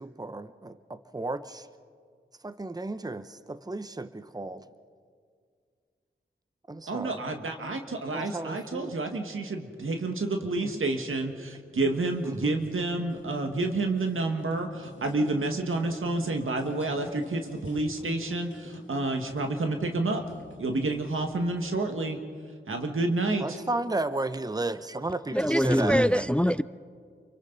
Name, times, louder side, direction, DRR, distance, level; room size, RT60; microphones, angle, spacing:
voice 1, 0.0-1.7 2.4-4.7 6.7-7.2 8.1-9.0 10.6-10.8 12.2-12.6 23.4-26.3, right 2 dB, 20° right, 12 dB, 0.8 m, -34 dB
voice 2, 6.9-20.2 20.6-22.2 22.7-23.6, right 2 dB, 90° right, 4 dB, 1.8 m, -29 dB
sound 1, 11.7-21.8, left 2 dB, 65° left, 2.3 m, -49 dB
voice 3, 25.3-26.6, equal, 5° left, 15 dB, 0.4 m, -23 dB
30.0 x 24.0 x 4.0 m, 2.1 s
cardioid pair, 50°, 20 cm